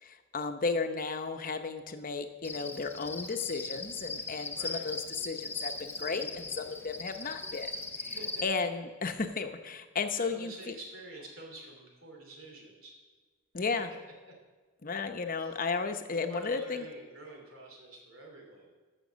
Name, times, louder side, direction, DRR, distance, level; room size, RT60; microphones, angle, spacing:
voice 1, 0.0-7.7 8.0-8.2 8.4-10.7 13.5-13.9 14.8-16.9, left 4 dB, 45° left, 7 dB, 0.8 m, -34 dB
Cricket, 2.4-8.4, left 3 dB, 10° left, 0.7 m, -39 dB
voice 2, 4.5-4.9 8.2-8.4 10.3-12.9 15.4-15.5 16.1-18.7, right 2 dB, 80° right, 0 dB, 3.0 m, -48 dB
14.0 x 6.0 x 6.3 m, 1.4 s
head